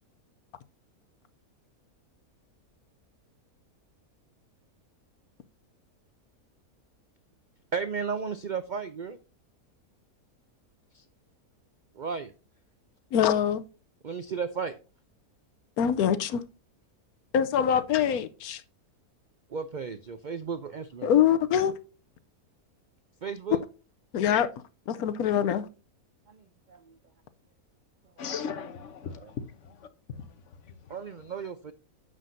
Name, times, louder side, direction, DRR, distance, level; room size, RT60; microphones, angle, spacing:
voice 1, 7.7-9.2 10.9-11.0 11.9-12.3 14.0-14.7 19.5-21.1 23.2-23.6 26.3-26.9 29.2-29.3 30.9-31.7, right 6 dB, 90° right, 0.4 m, -34 dB
voice 2, 13.1-13.6 15.8-16.4 17.3-18.6 21.0-21.7 24.1-24.5 24.9-25.7, left 9 dB, 75° left, 1.1 m, -24 dB
voice 3, 28.2-31.0, left 6 dB, 55° left, 1.2 m, -39 dB
9.9 x 7.7 x 2.6 m
omnidirectional pair, 1.6 m